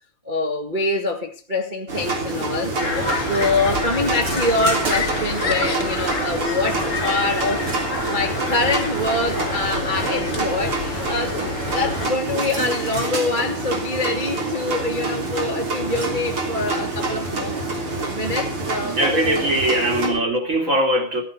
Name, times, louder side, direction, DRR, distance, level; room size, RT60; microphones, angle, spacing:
voice 1, 0.2-2.7 3.1-7.7 8.1-17.6 18.1-19.5 20.0-20.2, left 2 dB, 55° right, 0.5 m, -25 dB
sound 1, 1.9-20.1, right 2 dB, 35° right, 3.8 m, -27 dB
sound 2, 2.8-12.1, left 3 dB, 25° left, 3.7 m, -28 dB
voice 2, 18.8-21.2, right 1 dB, 20° right, 3.2 m, -21 dB
15.0 x 11.5 x 6.1 m
omnidirectional pair, 4.4 m